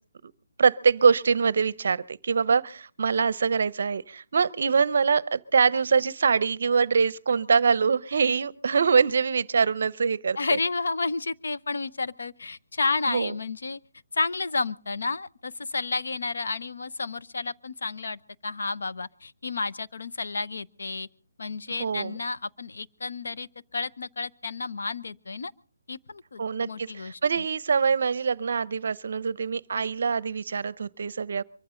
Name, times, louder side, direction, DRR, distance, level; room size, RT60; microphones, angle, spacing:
voice 1, 0.6-10.6 13.1-13.3 21.8-22.2 26.4-31.4, right 5 dB, 50° right, 21 dB, 0.7 m, -24 dB
voice 2, 10.4-13.8 14.1-21.1 21.4-25.5 25.9-27.4, left 3 dB, 70° left, 13 dB, 0.8 m, -31 dB
24.0 x 14.5 x 3.8 m, 0.41 s
hypercardioid pair, 175°, 0 cm